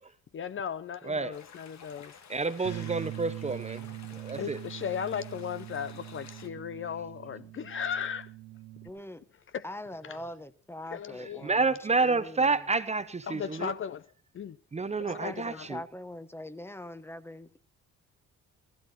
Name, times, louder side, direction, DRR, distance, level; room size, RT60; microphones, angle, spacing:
voice 1, 0.3-2.1 4.4-8.3 9.5-9.7 10.0-10.2 10.9-11.5 13.3-14.1 14.3-14.6 15.2-15.7, left 8 dB, 45° left, 0.6 m, -36 dB
voice 2, 1.0-1.3 2.3-4.6 11.4-13.7 14.7-15.8, right 4 dB, 20° right, 0.9 m, -29 dB
sound 1, 1.3-6.5, left 7 dB, 65° left, 1.8 m, -52 dB
Bass guitar, 2.6-8.9, right 16 dB, 80° right, 1.2 m, -42 dB
voice 3, 8.8-9.2 9.6-11.7 12.0-12.7 15.0-17.6, left 1 dB, 10° left, 1.0 m, -42 dB
15.5 x 14.0 x 4.2 m
cardioid pair, 90°, 30 cm